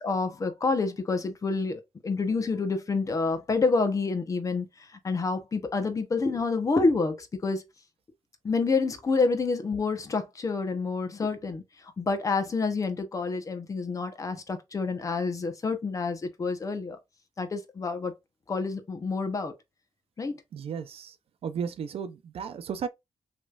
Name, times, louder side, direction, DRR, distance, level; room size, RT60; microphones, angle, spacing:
voice 1, 0.0-4.7 5.0-7.6 8.4-11.6 12.0-17.0 17.4-18.1 18.5-19.5 20.2-20.4, left 4 dB, 35° left, 1.0 m, -28 dB
voice 2, 20.5-21.2 21.4-22.9, right 7 dB, 80° right, 0.6 m, -34 dB
6.4 x 3.2 x 2.5 m
wide cardioid pair, 175°, 10 cm